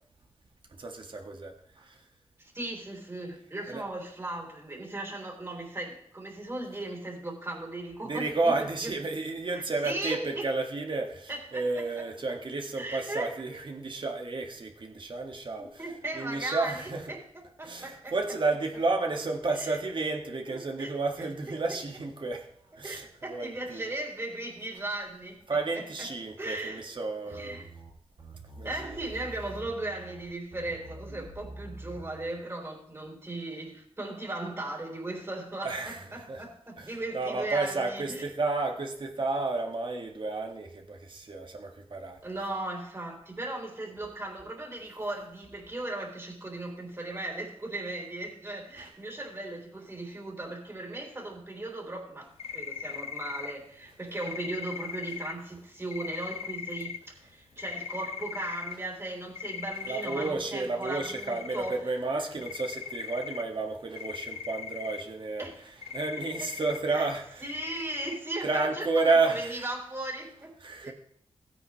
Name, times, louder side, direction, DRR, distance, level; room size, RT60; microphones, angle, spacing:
voice 1, 0.8-2.0 3.7-3.8 8.0-15.8 16.1-17.1 17.6-22.5 22.8-23.9 25.5-27.6 28.6-29.0 35.6-36.4 36.8-42.2 48.8-48.9 59.8-65.5 65.9-67.5 68.4-69.7 70.6-70.9, right 3 dB, 55° right, 3 dB, 1.9 m, -31 dB
voice 2, 2.4-8.5 8.8-8.9 9.5-10.5 11.3-12.1 12.7-13.6 15.6-17.2 17.6-18.2 19.6-19.8 20.5-20.9 21.2-21.8 22.8-26.1 26.4-26.8 27.3-27.7 28.6-38.3 42.2-61.9 65.4-65.7 66.4-66.5 66.9-67.1 67.4-70.5 70.8-70.9, right 2 dB, 25° right, 0 dB, 3.7 m, -37 dB
sound 1, 27.3-32.4, right 2 dB, 90° right, 4.2 m, -45 dB
sound 2, 52.4-53.5 54.2-55.3 55.9-57.0 57.6-58.7 59.3-60.3 60.8-61.8 62.0-62.1 62.4-63.4 63.9-65.0 65.8-66.8 67.4-68.2, left 7 dB, 85° left, 0.6 m, -39 dB
16.0 x 9.4 x 3.2 m, 0.67 s
wide cardioid pair, 85°, 10 cm